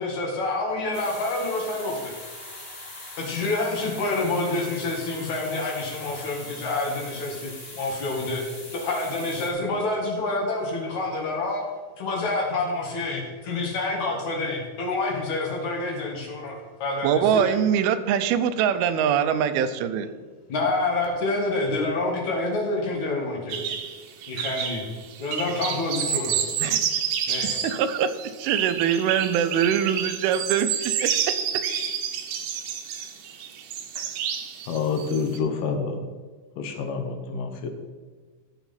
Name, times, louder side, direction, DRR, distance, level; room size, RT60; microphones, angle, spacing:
voice 1, 0.0-2.1 3.2-8.4 8.7-11.6 12.0-17.6 20.5-23.6 24.3-24.9 25.2-26.4 27.3-27.7, left 2 dB, 55° left, 0 dB, 2.9 m, -28 dB
sound 1, 0.9-9.5, left 2 dB, 25° left, 2.1 m, -41 dB
voice 2, 17.0-20.1 26.6-26.9 27.4-28.1 28.4-31.4, right 8 dB, 90° right, 11 dB, 2.6 m, -23 dB
sound 2, 23.5-35.4, right 8 dB, 70° right, 2.3 m, -29 dB
voice 3, 34.7-36.0 36.6-37.7, left 5 dB, 75° left, 5 dB, 2.6 m, -28 dB
13.5 x 7.1 x 4.3 m, 1.4 s
omnidirectional pair, 4.3 m